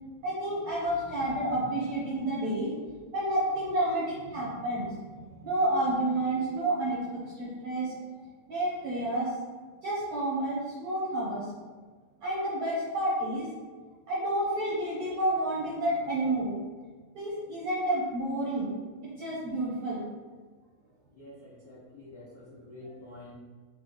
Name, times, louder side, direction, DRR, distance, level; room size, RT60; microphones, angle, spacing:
voice 1, 0.2-2.7 3.1-8.0 8.5-9.3 9.8-11.5 12.2-13.5 14.1-16.5 17.1-18.7 19.2-20.0, right 1 dB, 70° right, -7 dB, 1.4 m, -30 dB
voice 2, 21.2-23.3, left 2 dB, 50° left, -12 dB, 1.0 m, -48 dB
5.6 x 2.0 x 3.3 m, 1.4 s
omnidirectional pair, 3.4 m